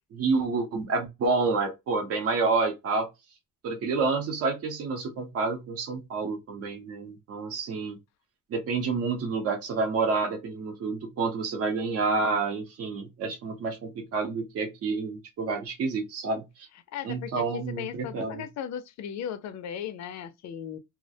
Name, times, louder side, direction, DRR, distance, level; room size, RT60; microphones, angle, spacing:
voice 1, 0.1-3.1 3.6-8.0 8.5-16.7 17.0-18.4, right 4 dB, 45° right, 0.7 m, -29 dB
voice 2, 16.9-20.8, left 9 dB, 55° left, 0.4 m, -37 dB
2.4 x 2.0 x 2.6 m
cardioid pair, 180°, 33 cm